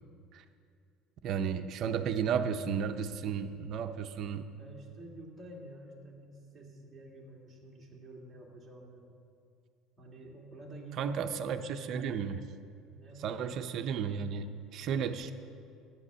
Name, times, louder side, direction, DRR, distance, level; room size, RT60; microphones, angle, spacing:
voice 1, 1.2-4.5 11.0-12.4 13.2-15.3, right 7 dB, 45° right, 8 dB, 0.6 m, -33 dB
voice 2, 4.6-9.1 10.0-11.6 12.9-13.5, right 1 dB, 10° right, -4 dB, 2.2 m, -49 dB
13.0 x 8.9 x 6.8 m, 2.4 s
cardioid pair, 160°, 0 cm